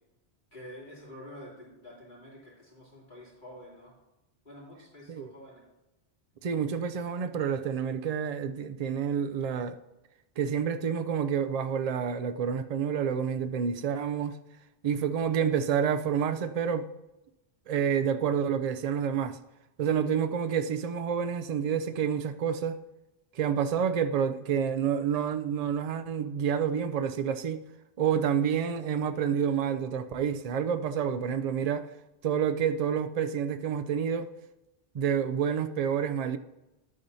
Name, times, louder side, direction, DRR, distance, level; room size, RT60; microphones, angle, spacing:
voice 1, 0.5-3.9 4.4-5.6, left 1 dB, 50° left, 3.2 m, -48 dB
voice 2, 6.4-9.8 10.4-14.4 14.8-16.9 17.7-19.4 19.8-22.8 23.3-27.6 28.0-31.9 32.2-34.3 34.9-36.4, right 7 dB, 50° right, 0.5 m, -28 dB
11.5 x 8.5 x 2.7 m
omnidirectional pair, 1.1 m